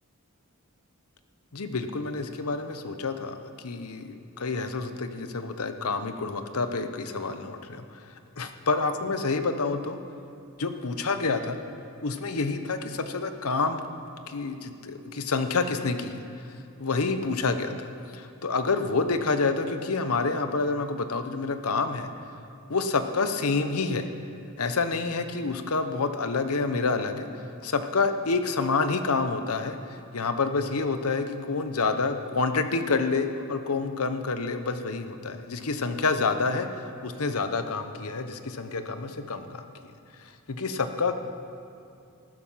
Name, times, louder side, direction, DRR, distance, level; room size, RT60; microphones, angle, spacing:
voice 1, 1.5-7.8 8.4-10.0 10.6-11.6 12.0-13.8 14.3-16.2 16.8-17.9 18.1-22.1 22.7-24.1 24.6-27.3 27.6-39.7 40.5-41.2, left 4 dB, 75° left, 8 dB, 0.9 m, -28 dB
15.0 x 12.5 x 5.7 m, 2.6 s
head